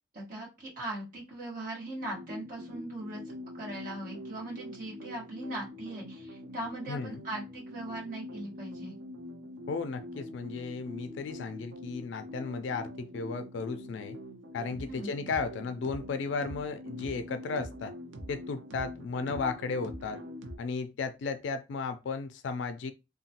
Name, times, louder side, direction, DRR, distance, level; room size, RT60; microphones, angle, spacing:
voice 1, 0.1-3.2 3.6-8.9 14.9-15.1, right 1 dB, 50° right, 1.4 m, -39 dB
sound 1, 2.0-20.6, left 1 dB, 85° right, 0.6 m, -44 dB
voice 2, 6.9-7.2 9.7-14.2 14.5-17.9 18.3-20.2 20.6-22.9, left 4 dB, 75° left, 0.3 m, -35 dB
2.9 x 2.2 x 2.8 m
head